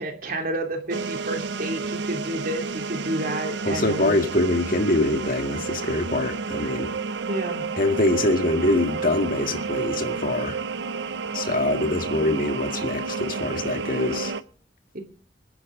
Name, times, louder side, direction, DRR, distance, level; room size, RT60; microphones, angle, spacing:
voice 1, 0.0-4.2 7.3-7.6 14.9-15.0, right 1 dB, 50° right, 3 dB, 2.8 m, -30 dB
sound 1, 0.9-14.4, right 4 dB, 70° right, 0.6 m, -31 dB
voice 2, 3.7-6.9 7.8-10.6 11.3-14.3, left 2 dB, 50° left, 6 dB, 1.9 m, -24 dB
26.5 x 10.0 x 3.8 m, 0.42 s
head